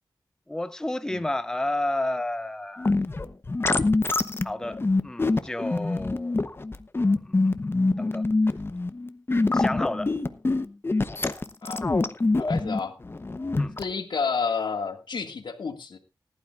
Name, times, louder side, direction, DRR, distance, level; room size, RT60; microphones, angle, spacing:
voice 1, 0.5-2.9 4.4-6.4 7.1-7.4 7.6-8.3 9.5-10.1 13.6-13.8, left 1 dB, 10° left, 0.5 m, -31 dB
sound 1, 2.8-13.8, left 3 dB, 30° left, 0.9 m, -25 dB
voice 2, 12.4-12.9 13.8-16.0, left 5 dB, 85° left, 2.0 m, -30 dB
19.5 x 11.5 x 2.5 m
wide cardioid pair, 95°, 8 cm